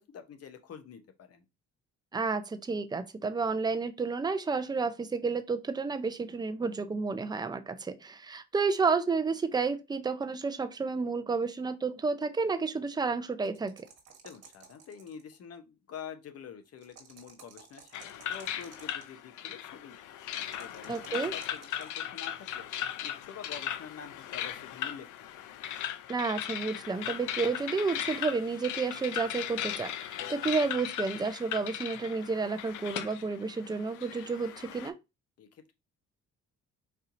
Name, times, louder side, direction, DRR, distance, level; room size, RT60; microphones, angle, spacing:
voice 1, 0.0-1.4 14.2-20.0 20.5-22.7 23.0-25.5 35.4-35.7, left 7 dB, 55° left, 0.7 m, -47 dB
voice 2, 2.1-13.9 20.9-21.3 26.1-35.0, right 4 dB, 15° right, 0.4 m, -31 dB
sound 1, 13.4-15.3 16.8-19.1 20.5-22.0, right 6 dB, 55° right, 1.3 m, -54 dB
sound 2, 17.9-34.9, left 11 dB, 85° left, 0.5 m, -38 dB
4.3 x 2.7 x 2.5 m
cardioid pair, 90°, 30 cm